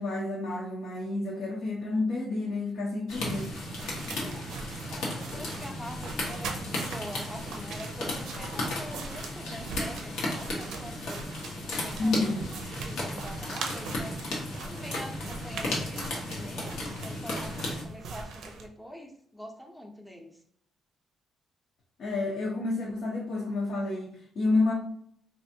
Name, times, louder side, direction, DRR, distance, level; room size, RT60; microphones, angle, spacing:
voice 1, 0.0-3.6 12.0-12.5 22.0-24.7, left 2 dB, 65° left, -3 dB, 0.7 m, -29 dB
sound 1, 3.1-17.8, left 1 dB, 90° left, 1.0 m, -35 dB
sound 2, 3.1-18.7, right 4 dB, 80° right, 0.5 m, -41 dB
voice 2, 4.9-11.3 11.8-14.2 14.6-17.5 17.8-20.4, equal, 5° left, 2 dB, 0.6 m, -44 dB
3.2 x 2.5 x 2.7 m, 0.66 s
cardioid pair, 90°, 0 cm